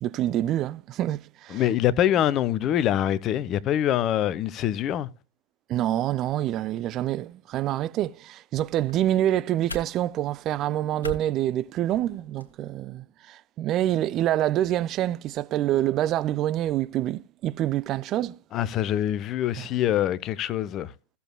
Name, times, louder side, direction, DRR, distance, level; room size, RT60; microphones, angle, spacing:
voice 1, 0.0-1.6 5.7-18.4 19.6-19.7, right 13 dB, 35° right, 0.5 m, -26 dB
voice 2, 1.5-5.1 18.5-20.9, left 11 dB, 35° left, 0.8 m, -24 dB
sound 1, 8.6-12.5, equal, 75° left, 1.8 m, -43 dB
16.5 x 7.0 x 2.3 m
figure-of-eight pair, 90°, 0 cm